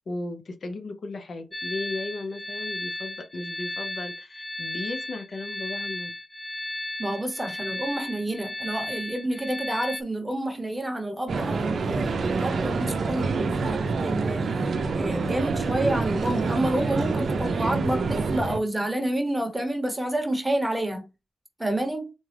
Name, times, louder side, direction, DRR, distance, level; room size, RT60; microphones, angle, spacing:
voice 1, 0.1-6.1, left 2 dB, 60° left, 0.7 m, -35 dB
sound 1, 1.5-10.0, left 1 dB, 15° left, 0.4 m, -35 dB
voice 2, 7.0-21.0 21.6-22.1, right 1 dB, 10° right, 0.9 m, -29 dB
sound 2, 11.3-18.6, right 4 dB, 65° right, 0.5 m, -27 dB
4.0 x 2.4 x 3.3 m
cardioid pair, 85°, 0 cm